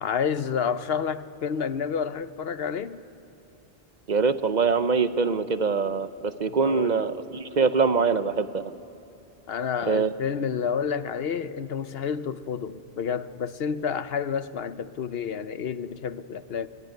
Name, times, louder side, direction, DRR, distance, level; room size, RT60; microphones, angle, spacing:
voice 1, 0.0-3.0 6.6-7.1 9.5-16.7, left 7 dB, 75° left, 1.0 m, -29 dB
voice 2, 4.1-8.7 9.9-10.1, right 5 dB, 50° right, 0.8 m, -24 dB
25.5 x 21.0 x 9.3 m
omnidirectional pair, 1.0 m